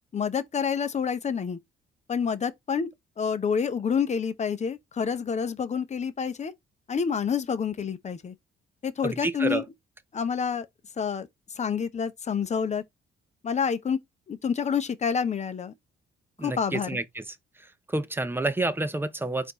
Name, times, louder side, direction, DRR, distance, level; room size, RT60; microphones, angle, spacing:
voice 1, 0.1-1.6 2.1-2.9 3.2-6.5 6.9-8.3 8.8-9.6 10.1-10.7 11.0-11.3 11.6-12.8 13.4-14.0 14.3-15.7 16.4-17.0, left 6 dB, 35° left, 0.7 m, -28 dB
voice 2, 9.0-9.6 16.4-17.2 17.9-19.5, right 2 dB, 10° right, 0.6 m, -29 dB
4.4 x 2.7 x 3.9 m
cardioid pair, 90°, 20 cm